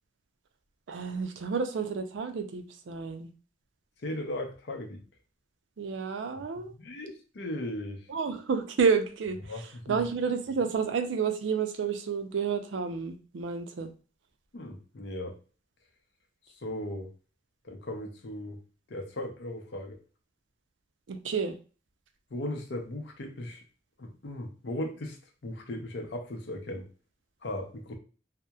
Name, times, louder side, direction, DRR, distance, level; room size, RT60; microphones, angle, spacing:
voice 1, 0.9-3.3 5.8-6.7 8.1-9.4 9.9-13.9 21.1-21.5, right 5 dB, 80° right, 7 dB, 0.4 m, -30 dB
voice 2, 4.0-5.0 6.6-8.1 9.4-10.1 14.5-15.4 16.5-17.1 17.6-18.6 18.9-20.0 22.3-23.6 24.0-25.2 25.4-26.9 27.4-27.9, left 1 dB, 65° left, 3 dB, 0.6 m, -37 dB
2.7 x 2.0 x 2.2 m, 0.36 s
head